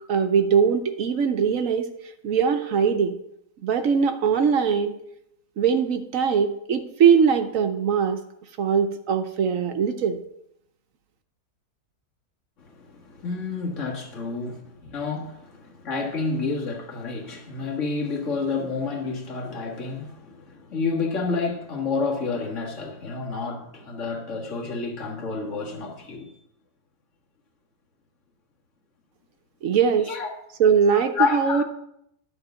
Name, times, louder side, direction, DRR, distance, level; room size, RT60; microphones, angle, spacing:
voice 1, 0.1-1.9 2.2-3.1 3.6-4.9 5.6-8.2 8.6-10.2 29.6-30.1 30.6-31.6, right 7 dB, 65° right, 1.1 m, -21 dB
voice 2, 12.6-26.3 30.1-30.3 30.9-31.6, left 4 dB, 50° left, 1.8 m, -29 dB
11.0 x 4.4 x 6.8 m
omnidirectional pair, 1.7 m